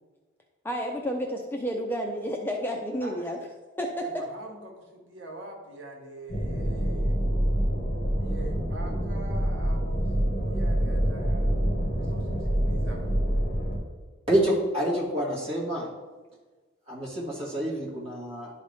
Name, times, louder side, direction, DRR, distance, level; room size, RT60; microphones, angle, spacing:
voice 1, 0.6-3.4 3.8-3.9, equal, 10° left, 1 dB, 0.5 m, -30 dB
voice 2, 3.0-3.4 4.0-7.2 8.2-11.6 12.0-13.2, right 2 dB, 75° right, 1 dB, 1.3 m, -44 dB
sound 1, 6.3-13.8, equal, 40° left, 1.9 m, -26 dB
voice 3, 14.3-15.9 16.9-18.5, right 1 dB, 30° right, -5 dB, 2.1 m, -27 dB
11.5 x 4.1 x 3.5 m, 1.3 s
head